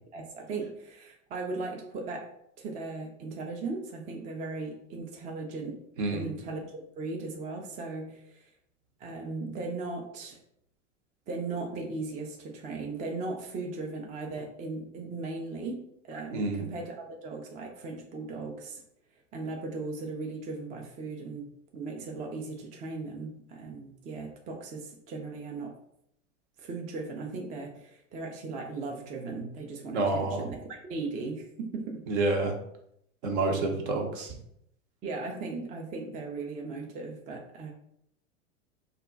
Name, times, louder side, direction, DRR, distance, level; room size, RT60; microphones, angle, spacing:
voice 1, 0.1-2.3 2.6-5.8 6.1-8.5 9.0-10.4 11.3-17.0 17.2-18.8 19.3-25.7 26.6-32.0 35.0-37.7, right 3 dB, 20° right, 1 dB, 0.3 m, -37 dB
voice 2, 6.0-6.3 16.3-16.6 29.9-30.4 32.1-32.5 33.2-34.3, right 2 dB, 60° right, 3 dB, 0.8 m, -28 dB
2.3 x 2.1 x 3.7 m, 0.73 s
hypercardioid pair, 95°, 38 cm